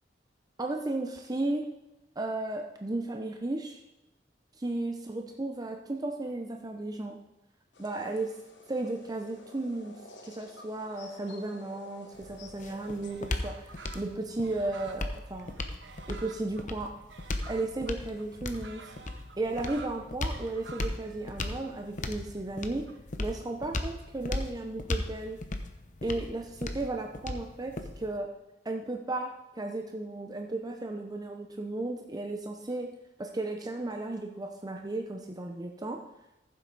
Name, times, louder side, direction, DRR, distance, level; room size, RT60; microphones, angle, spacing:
voice 1, 0.6-1.6 2.2-3.8 4.6-7.2 7.8-8.3 8.7-10.0 10.2-15.5 16.1-16.9 17.5-18.8 19.4-22.8 23.2-25.4 26.0-28.3 28.6-32.9 33.2-36.0, right 2 dB, 20° right, 3 dB, 0.7 m, -34 dB
sound 1, 7.7-13.1, left 2 dB, 90° left, 1.4 m, -52 dB
sound 2, 12.1-28.2, left 2 dB, 45° left, 0.9 m, -37 dB
sound 3, 12.8-23.0, right 5 dB, 80° right, 0.9 m, -51 dB
14.5 x 7.6 x 4.0 m, 0.96 s
head